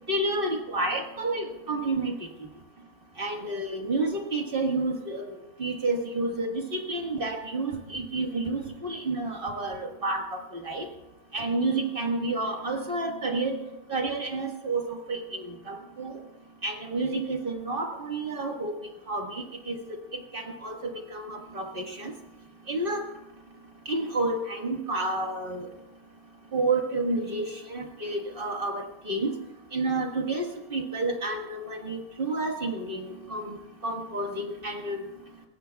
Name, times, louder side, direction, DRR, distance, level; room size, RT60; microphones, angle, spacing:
voice 1, 0.1-2.2 3.2-5.3 5.6-10.9 11.3-13.6 13.9-16.1 16.6-18.7 19.1-19.8 20.1-20.8 21.1-22.1 22.7-23.0 23.9-25.7 26.5-29.3 29.7-33.6 33.8-35.0, right 2 dB, 35° right, 2 dB, 1.8 m, -30 dB
29.0 x 15.5 x 2.3 m, 0.97 s
omnidirectional pair, 1.7 m